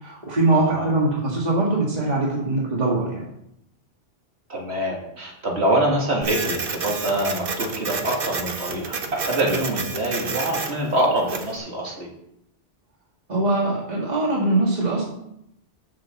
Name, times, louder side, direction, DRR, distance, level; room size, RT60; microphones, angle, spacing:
voice 1, 0.0-3.3 13.3-15.0, right 2 dB, 40° right, -4 dB, 1.9 m, -22 dB
voice 2, 0.5-0.9 4.5-12.1, right 1 dB, 90° right, -1 dB, 2.5 m, -25 dB
Printer, 6.2-11.6, right 4 dB, 60° right, 1.1 m, -30 dB
7.1 x 6.2 x 7.1 m, 0.79 s
omnidirectional pair, 1.1 m